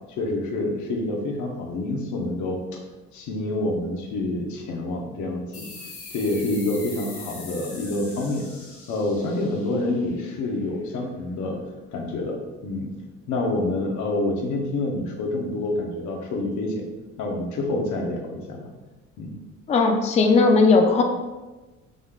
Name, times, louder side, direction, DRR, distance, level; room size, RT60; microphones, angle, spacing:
voice 1, 0.1-2.8 3.1-5.7 6.1-8.5 8.9-11.6 11.9-12.9 13.3-16.9 17.2-18.7 19.2-19.3, left 2 dB, 75° left, 2 dB, 0.9 m, -27 dB
sound 1, 5.5-10.7, left 3 dB, 50° left, 1.2 m, -42 dB
voice 2, 19.7-21.0, left 3 dB, 20° left, 3 dB, 0.4 m, -17 dB
5.0 x 3.6 x 2.3 m, 1.1 s
cardioid pair, 140°, 30 cm